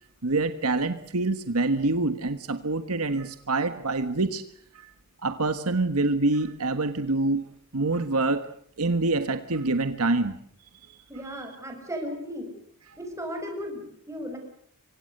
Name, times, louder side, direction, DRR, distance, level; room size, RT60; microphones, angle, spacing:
voice 1, 0.2-4.4 4.7-4.9 5.2-7.4 7.7-8.5 8.8-10.4 10.9-11.0 11.3-11.4, right 2 dB, 75° right, 10 dB, 1.4 m, -26 dB
voice 2, 11.1-12.5 13.0-14.4, equal, 15° right, 3 dB, 6.9 m, -35 dB
26.5 x 24.5 x 6.7 m, 0.64 s
head